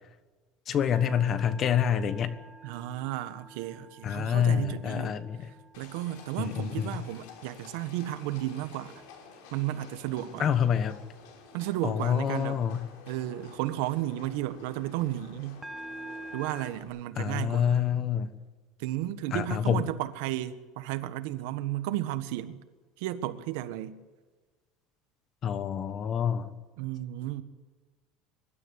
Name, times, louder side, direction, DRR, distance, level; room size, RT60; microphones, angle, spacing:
voice 1, 0.7-2.3 4.0-5.5 6.4-7.0 10.4-11.0 11.8-12.9 17.2-18.3 19.3-19.8 25.4-26.5, left 8 dB, 35° left, 1.3 m, -27 dB
sound 1, 0.9-9.2 9.7-10.0 15.6-16.7, right 2 dB, 5° right, 1.1 m, -48 dB
voice 2, 2.6-5.2 5.8-8.9 9.5-10.5 11.5-12.6 13.1-15.6 16.3-17.8 18.8-22.6 23.0-24.0 26.8-27.4, right 14 dB, 75° right, 1.4 m, -33 dB
Livestock farm animals working animals, 5.7-16.8, left 5 dB, 85° left, 5.7 m, -51 dB
23.5 x 12.5 x 9.6 m
cardioid pair, 155°, 0 cm